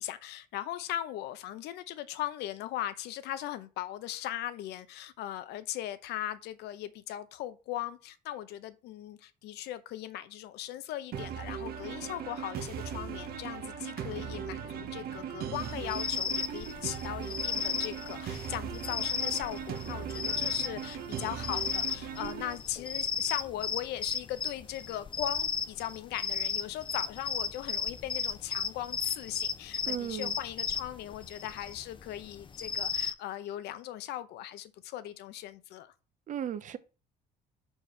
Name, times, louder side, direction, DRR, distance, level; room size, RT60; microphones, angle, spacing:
voice 1, 0.0-35.9, left 13 dB, 80° left, 0.7 m, -39 dB
sound 1, 11.1-22.5, right 8 dB, 65° right, 1.0 m, -39 dB
sound 2, 15.5-33.1, left 6 dB, 30° left, 0.6 m, -35 dB
voice 2, 29.8-30.3 36.3-36.8, right 9 dB, 50° right, 0.7 m, -35 dB
4.8 x 4.6 x 5.5 m
cardioid pair, 110°, 17 cm